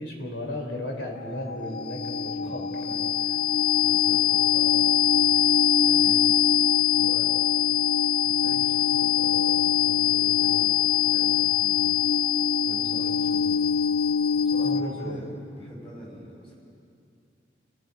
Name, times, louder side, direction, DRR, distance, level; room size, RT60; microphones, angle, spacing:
voice 1, 0.0-2.6 14.6-15.2, left 1 dB, 75° left, 1 dB, 3.5 m, -34 dB
sound 1, 1.2-15.1, left 9 dB, 50° left, 0.4 m, -23 dB
voice 2, 2.4-5.4 5.7-6.2 6.9-7.3 8.2-11.9 12.6-13.7 14.3-16.5, equal, 30° left, -4 dB, 5.9 m, -43 dB
30.0 x 17.0 x 5.3 m, 2.5 s
head